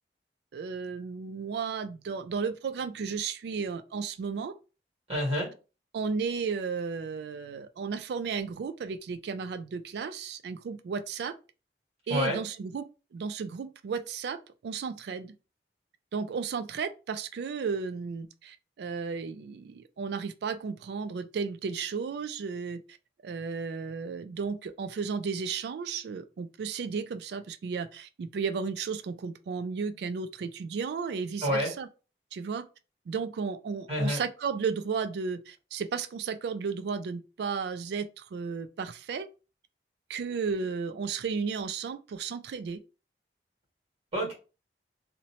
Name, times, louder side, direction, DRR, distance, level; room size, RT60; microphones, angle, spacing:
voice 1, 0.5-4.5 5.9-11.3 12.1-15.4 16.1-22.8 23.2-31.9 32.3-32.7 33.1-39.3 40.1-42.8, right 5 dB, 70° right, 0.3 m, -34 dB
voice 2, 5.1-5.5 12.1-12.4 31.4-31.7 33.9-34.2 44.1-44.3, equal, 35° right, 1.5 m, -27 dB
2.8 x 2.0 x 2.8 m
head